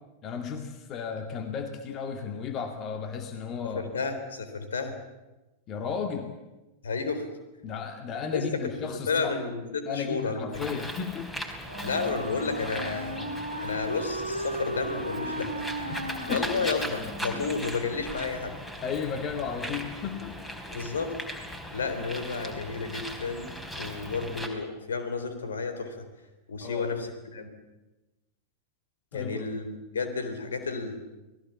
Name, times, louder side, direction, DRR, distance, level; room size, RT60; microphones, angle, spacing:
voice 1, 0.2-3.9 5.7-6.3 7.6-9.4 9.9-11.3 15.9-16.8 17.3-17.5 18.8-20.4 26.6-26.9 29.1-29.5, left 6 dB, 35° left, 6 dB, 2.1 m, -34 dB
voice 2, 3.7-5.0 6.8-7.3 8.3-10.6 11.8-13.3 13.6-15.6 16.3-18.5 20.7-21.1 21.7-26.0 26.5-27.5 29.1-31.0, left 4 dB, 70° left, 8 dB, 3.7 m, -32 dB
Bird, 10.5-24.5, equal, 10° left, 4.3 m, -39 dB
Wind instrument woodwind instrument, 11.6-17.5, right 1 dB, 85° right, 2.2 m, -36 dB
29.0 x 19.5 x 7.2 m, 1.0 s
figure-of-eight pair, 90°, 0 cm